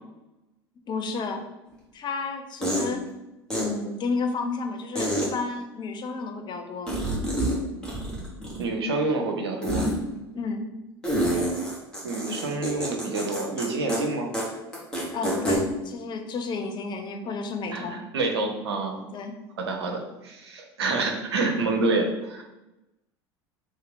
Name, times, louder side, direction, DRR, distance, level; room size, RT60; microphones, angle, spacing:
voice 1, 0.9-1.4 1.9-3.0 3.6-7.0 10.3-10.6 11.3-11.5 15.1-18.0 19.1-19.3, left 4 dB, 35° left, 5 dB, 0.6 m, -32 dB
sound 1, 1.7-1.8 2.6-2.9 3.5-3.6 5.0-5.3 6.9-7.6 7.8-8.7 9.6-9.9 11.0-13.6 13.9-14.0 14.3-14.4 14.7-15.6, right 1 dB, 5° left, 1.3 m, -27 dB
voice 2, 8.6-9.9 12.0-14.3 17.7-19.0 19.6-22.4, right 3 dB, 75° right, 2 dB, 0.7 m, -27 dB
3.1 x 2.8 x 3.8 m, 0.97 s
figure-of-eight pair, 70°, 14 cm